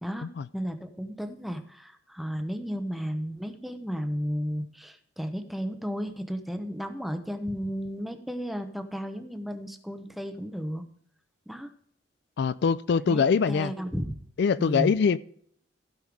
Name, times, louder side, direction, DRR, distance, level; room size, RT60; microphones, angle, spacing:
voice 1, 0.5-10.8 11.5-11.7 13.0-14.2 14.6-14.9, equal, ahead, 8 dB, 0.9 m, -33 dB
voice 2, 12.4-13.7 14.4-15.2, left 5 dB, 60° left, 16 dB, 0.4 m, -23 dB
15.5 x 5.6 x 4.8 m, 0.63 s
head